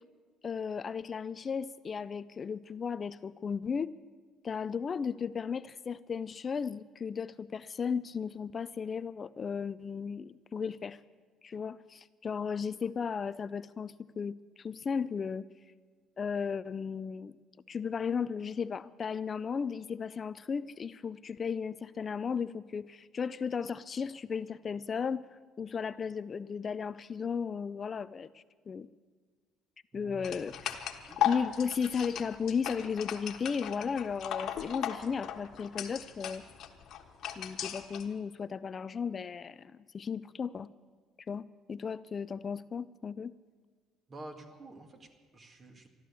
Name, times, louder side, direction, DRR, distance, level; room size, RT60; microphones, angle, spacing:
voice 1, 0.4-3.9 4.4-11.0 11.4-15.5 16.2-17.4 17.7-28.9 29.9-30.8 31.2-36.4 37.4-40.7 41.3-43.3, left 6 dB, 40° left, 15 dB, 0.4 m, -35 dB
voice 2, 29.9-30.3 30.6-30.7 31.0-31.3 44.1-45.9, right 2 dB, 35° right, 5 dB, 2.0 m, -49 dB
sound 1, 30.2-38.0, left 10 dB, 65° left, 1.4 m, -37 dB
13.5 x 12.0 x 8.2 m, 1.5 s
cardioid pair, 90°, 0 cm